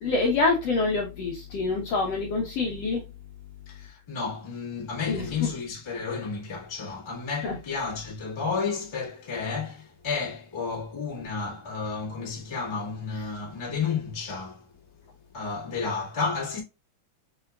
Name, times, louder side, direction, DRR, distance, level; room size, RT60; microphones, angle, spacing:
voice 1, 0.0-3.0 5.1-5.5 7.4-7.6, left 3 dB, 65° left, 1.7 m, -26 dB
voice 2, 3.7-14.7 15.3-16.6, left 5 dB, 15° left, 1.0 m, -32 dB
6.1 x 3.5 x 2.3 m
omnidirectional pair, 3.8 m